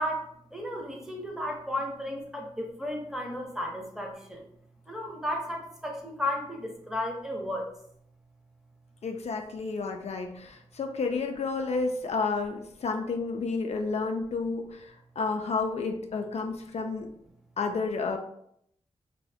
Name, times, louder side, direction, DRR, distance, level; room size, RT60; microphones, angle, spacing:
voice 1, 0.0-4.5 4.9-7.7, left 1 dB, 5° right, 0 dB, 0.8 m, -34 dB
voice 2, 9.0-17.1 17.6-18.2, left 4 dB, 65° left, 4 dB, 0.4 m, -31 dB
2.7 x 2.6 x 3.4 m, 0.71 s
cardioid pair, 75°, 12 cm